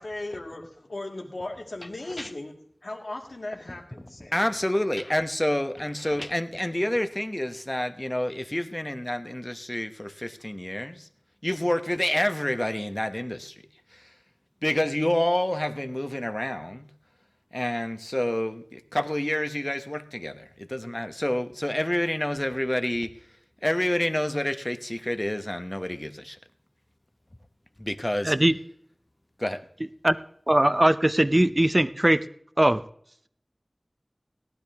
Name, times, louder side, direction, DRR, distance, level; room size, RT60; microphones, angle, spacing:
voice 1, 0.0-2.5 2.8-4.4, left 2 dB, 85° left, 1 dB, 2.3 m, -37 dB
voice 2, 4.3-11.1 11.4-13.6 13.9-14.1 14.6-16.9 17.5-23.1 23.6-26.4 27.8-28.3 29.4-29.6, left 1 dB, 25° left, 10 dB, 1.0 m, -28 dB
voice 3, 30.5-32.2 32.6-32.8, right 1 dB, 30° right, 13 dB, 0.7 m, -20 dB
18.0 x 12.0 x 3.5 m, 0.64 s
wide cardioid pair, 45°, 0 cm